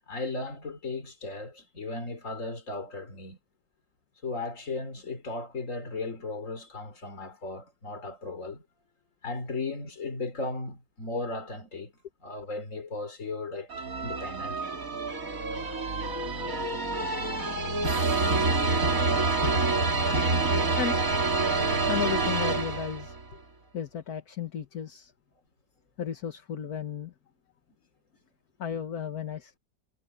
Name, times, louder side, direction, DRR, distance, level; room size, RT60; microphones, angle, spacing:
voice 1, 0.1-3.4 4.2-8.6 9.2-11.9 12.2-14.8 17.9-18.4, left 3 dB, 50° left, 3.8 m, -36 dB
sound 1, 13.7-23.2, right 3 dB, 55° right, 3.3 m, -27 dB
voice 2, 21.9-23.1 23.7-25.1 26.0-27.1 28.6-29.6, left 8 dB, 65° left, 2.0 m, -33 dB
omnidirectional pair, 1.8 m